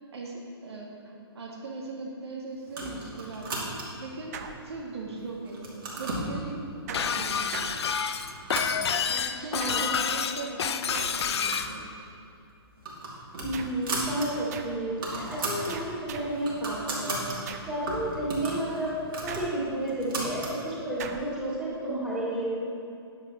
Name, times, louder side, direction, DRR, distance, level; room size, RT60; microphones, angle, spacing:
voice 1, 0.1-4.4 4.6-7.4 9.3-11.9, right 3 dB, 80° right, -1 dB, 2.0 m, -39 dB
sound 1, 2.7-4.1 4.6-5.1 5.4-6.3 7.0-7.1 7.5-7.8 8.1-9.4 9.7-9.8 10.0-10.1 10.9-11.7 12.0-12.2 12.6-14.3 14.6-14.7 14.9-15.7 16.1-17.4 17.9-20.6, right 2 dB, 60° right, 2.5 m, -35 dB
sound 2, 4.3-5.2 6.9-8.4 9.6-10.2 10.9-11.6 13.5-13.9 14.5-14.9 15.7-16.5 17.5-17.9 19.3-19.9 21.0-21.4, right 6 dB, 40° right, 0.6 m, -41 dB
Shatter, 6.9-11.7, left 7 dB, 80° left, 0.5 m, -28 dB
voice 2, 9.1-9.9 10.3-10.5 13.4-18.9 19.2-22.7, right 1 dB, 5° right, -8 dB, 2.5 m, -32 dB
9.6 x 8.1 x 4.3 m, 2.5 s
hypercardioid pair, 155°, 14 cm